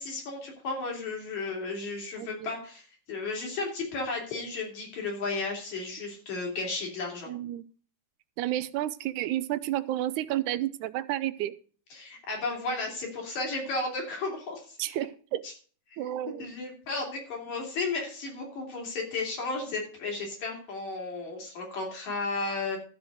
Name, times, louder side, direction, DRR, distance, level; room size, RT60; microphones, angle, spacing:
voice 1, 0.0-7.3 11.9-15.1 15.4-15.5 16.4-22.8, left 3 dB, 65° left, 0 dB, 4.4 m, -34 dB
voice 2, 2.2-2.5 7.3-7.6 8.4-11.5 14.8-15.4 16.0-16.5, right 13 dB, 80° right, 14 dB, 1.9 m, -31 dB
13.0 x 4.4 x 7.8 m, 0.42 s
omnidirectional pair, 3.6 m